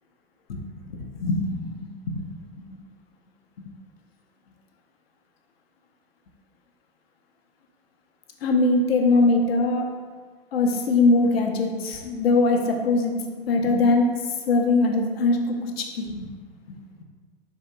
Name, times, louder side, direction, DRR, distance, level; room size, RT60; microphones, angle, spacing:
voice 1, 0.5-1.7 2.1-2.2 8.4-9.9 10.5-14.1 14.5-16.3 17.0-17.1, left 3 dB, 65° left, 3 dB, 0.6 m, -22 dB
4.3 x 2.8 x 2.2 m, 1.5 s
figure-of-eight pair, 95°, 32 cm